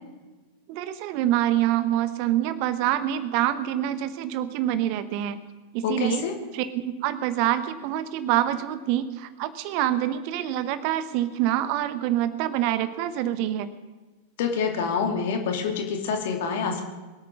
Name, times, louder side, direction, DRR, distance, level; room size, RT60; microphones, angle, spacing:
voice 1, 0.7-5.4 5.7-6.2 6.5-13.7, right 12 dB, 45° right, 13 dB, 0.9 m, -26 dB
voice 2, 5.8-6.3 14.4-16.8, left 6 dB, 55° left, 4 dB, 2.5 m, -26 dB
22.5 x 8.4 x 6.1 m, 1.2 s
figure-of-eight pair, 90°, 0 cm